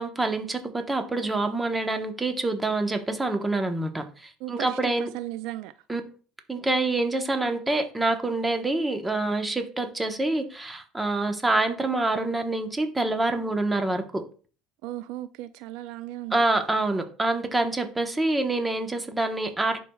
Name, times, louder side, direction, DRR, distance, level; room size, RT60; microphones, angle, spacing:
voice 1, 0.0-5.1 5.9-6.0 6.5-14.2 16.3-19.8, right 2 dB, 15° right, 1.1 m, -26 dB
voice 2, 4.4-5.7 14.8-16.4, right 14 dB, 75° right, 0.3 m, -36 dB
10.5 x 4.5 x 2.3 m
supercardioid pair, 105°, 0 cm